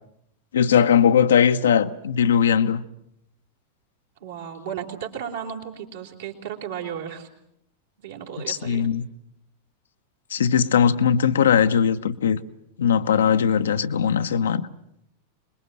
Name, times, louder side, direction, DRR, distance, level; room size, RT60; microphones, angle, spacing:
voice 1, 0.5-2.8 8.4-9.1 10.3-12.4 12.8-14.7, left 8 dB, 65° left, 0.9 m, -19 dB
voice 2, 4.2-7.3 8.0-8.8, right 8 dB, 60° right, 3.8 m, -34 dB
26.5 x 21.5 x 7.7 m
figure-of-eight pair, 90°, 0 cm